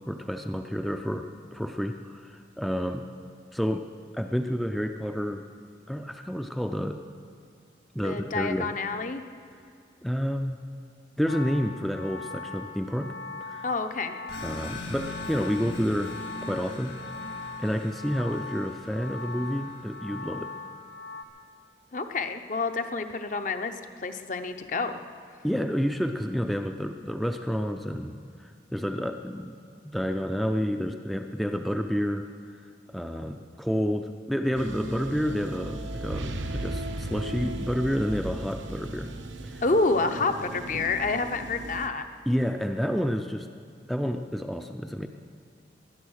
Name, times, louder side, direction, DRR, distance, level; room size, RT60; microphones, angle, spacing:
voice 1, 0.1-3.1 3.5-3.9 4.1-5.4 5.9-7.0 7.9-8.7 10.0-10.6 11.2-13.1 13.4-13.7 14.4-17.0 17.6-20.5 25.4-29.6 29.8-32.3 32.9-39.1 39.4-39.6 42.3-43.5 43.9-45.1, equal, ahead, 5 dB, 0.4 m, -29 dB
voice 2, 8.0-9.2 13.6-14.2 21.9-23.7 24.0-24.9 39.6-42.1, left 3 dB, 45° left, 7 dB, 0.7 m, -28 dB
sound 1, 11.3-21.2, left 3 dB, 85° left, 1.2 m, -40 dB
sound 2, 14.3-20.5, left 2 dB, 70° left, 2.3 m, -42 dB
sound 3, 34.5-41.9, right 1 dB, 90° right, 1.0 m, -36 dB
20.0 x 11.0 x 6.4 m, 2.4 s
head